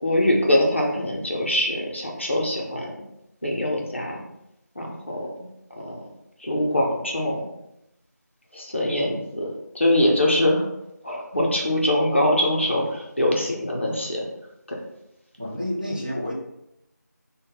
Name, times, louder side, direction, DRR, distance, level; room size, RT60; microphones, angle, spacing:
voice 1, 0.0-2.9 3.4-4.2 4.8-5.5 5.8-6.0 6.4-7.5 8.5-9.5 9.7-10.7 11.0-14.3 14.7-14.8, left 1 dB, 40° left, -1 dB, 0.6 m, -23 dB
voice 2, 15.4-16.3, left 1 dB, 25° right, -5 dB, 0.5 m, -29 dB
3.6 x 2.1 x 3.6 m, 0.84 s
figure-of-eight pair, 175°, 10 cm